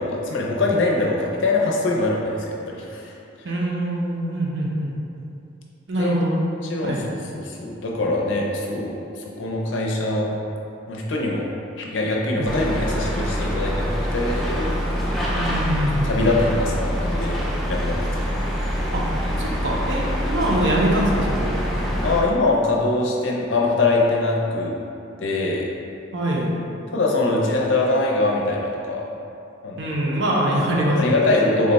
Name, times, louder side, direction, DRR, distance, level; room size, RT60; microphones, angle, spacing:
voice 1, 0.0-3.1 6.0-6.1 6.6-7.0 7.3-10.4 10.9-11.5 11.8-14.7 16.0-17.3 17.7-18.2 22.0-24.7 25.2-25.7 26.9-29.1 29.6-29.9 31.0-31.7, left 2 dB, 70° left, -2 dB, 0.5 m, -23 dB
voice 2, 3.4-4.9 5.9-6.3 6.8-7.0 12.3-12.5 15.3-16.1 18.9-19.1 19.4-21.6 26.1-26.5 29.8-31.6, right 1 dB, 65° right, -3 dB, 0.6 m, -23 dB
sound 1, 12.5-22.2, equal, ahead, 0.3 m, -25 dB
3.6 x 2.2 x 4.0 m, 2.7 s
head